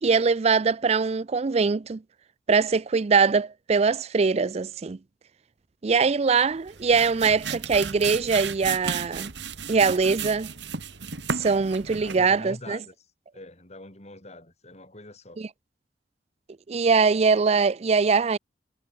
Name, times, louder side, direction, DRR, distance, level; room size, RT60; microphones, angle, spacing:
voice 1, 0.0-2.0 2.5-5.0 5.8-9.3 9.7-10.5 11.3-12.8 15.4-15.5 16.7-18.4, right 5 dB, 35° right, 0.4 m, -22 dB
sound 1, 6.5-12.4, right 6 dB, 85° right, 2.0 m, -34 dB
voice 2, 11.9-12.9 13.3-15.4, left 2 dB, 40° left, 7.0 m, -44 dB
head